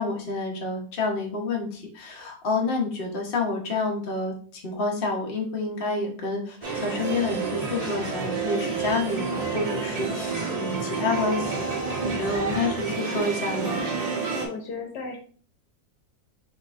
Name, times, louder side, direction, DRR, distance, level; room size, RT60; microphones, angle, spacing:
voice 1, 0.0-11.7 12.0-13.8, left 3 dB, 40° left, -1 dB, 0.9 m, -29 dB
sound 1, 6.6-14.4, right 4 dB, 35° right, 0.6 m, -29 dB
voice 2, 14.3-15.2, left 4 dB, 65° left, 3 dB, 1.4 m, -35 dB
6.0 x 3.1 x 2.5 m, 0.43 s
omnidirectional pair, 2.1 m